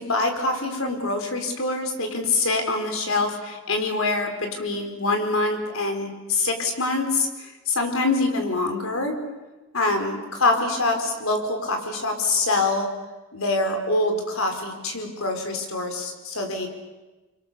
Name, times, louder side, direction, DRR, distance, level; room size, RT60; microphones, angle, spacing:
voice 1, 0.0-9.2 9.7-12.9 13.3-16.7, left 2 dB, 75° left, 5 dB, 4.5 m, -25 dB
29.0 x 25.0 x 7.0 m, 1.1 s
head